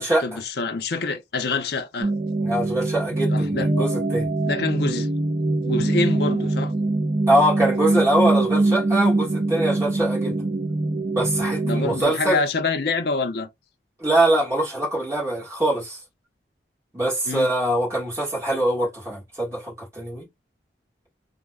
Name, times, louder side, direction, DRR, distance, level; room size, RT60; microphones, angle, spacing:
voice 1, 0.0-2.1 3.3-3.7 4.4-5.1 5.6-6.7 11.6-13.5 17.3-17.5, left 3 dB, 55° left, 0.5 m, -26 dB
sound 1, 2.0-12.0, right 2 dB, 45° right, 0.8 m, -23 dB
voice 2, 2.4-4.3 7.3-10.4 11.1-12.4 14.0-16.0 16.9-20.2, right 1 dB, 15° right, 1.6 m, -23 dB
3.1 x 2.0 x 3.5 m
head